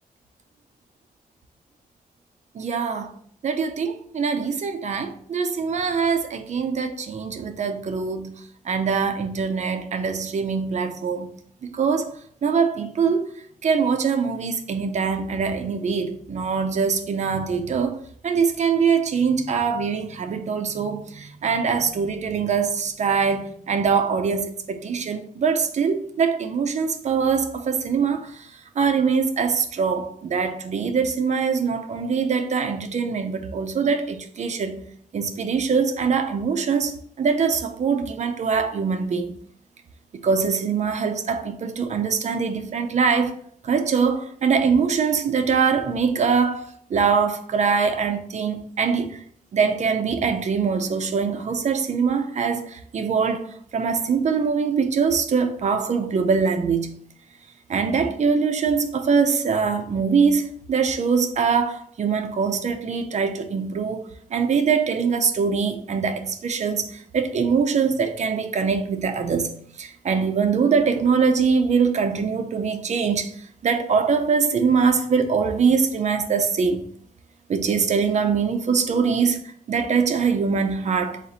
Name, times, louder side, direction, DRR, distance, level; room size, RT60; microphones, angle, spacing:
voice 1, 2.5-3.1 3.4-8.3 8.6-11.3 11.6-12.1 12.4-13.3 13.6-18.0 18.2-28.5 28.8-34.8 35.1-39.3 40.2-43.3 43.6-49.2 49.5-53.5 53.7-56.9 57.7-69.5 69.8-73.3 73.6-76.8 77.5-79.4 79.7-81.2, right 5 dB, 50° right, 0.5 m, -23 dB
4.1 x 2.5 x 4.1 m
wide cardioid pair, 140°, 15 cm